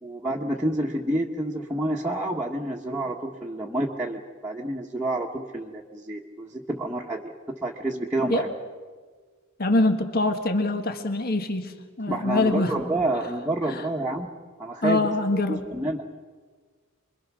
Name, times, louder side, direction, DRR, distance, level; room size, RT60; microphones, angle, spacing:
voice 1, 0.0-7.3 7.6-8.5 12.1-14.3 14.6-15.1 15.5-16.0, right 1 dB, 10° right, -4 dB, 1.5 m, -29 dB
voice 2, 9.6-12.7 13.7-13.8 14.8-15.6, left 2 dB, 45° left, 6 dB, 1.6 m, -24 dB
28.0 x 22.5 x 6.3 m, 1.5 s
head